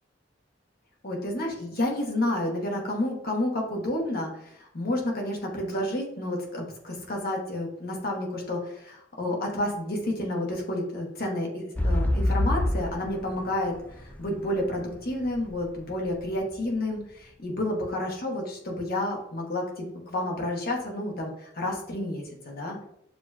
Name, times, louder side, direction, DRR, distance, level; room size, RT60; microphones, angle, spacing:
voice 1, 1.0-22.9, left 1 dB, 55° left, 0 dB, 1.2 m, -30 dB
sound 1, 11.8-15.6 16.2-16.3, left 1 dB, 10° left, 0.3 m, -26 dB
6.9 x 2.9 x 2.2 m, 0.76 s
head